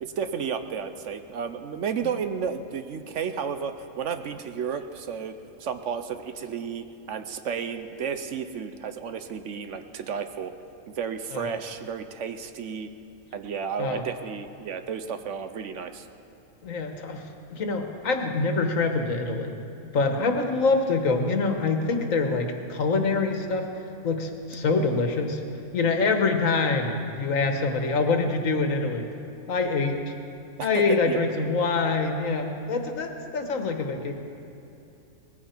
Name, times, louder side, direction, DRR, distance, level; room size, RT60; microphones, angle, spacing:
voice 1, 0.0-10.5 10.9-12.9 13.3-16.1 30.7-31.2, right 7 dB, 65° right, 9 dB, 1.0 m, -32 dB
voice 2, 16.6-17.2 17.5-19.5 19.9-23.7 24.0-25.4 25.7-29.0 29.5-30.1 30.6-34.1, left 4 dB, 70° left, 5 dB, 1.6 m, -25 dB
19.0 x 14.5 x 4.5 m, 2.8 s
omnidirectional pair, 1.4 m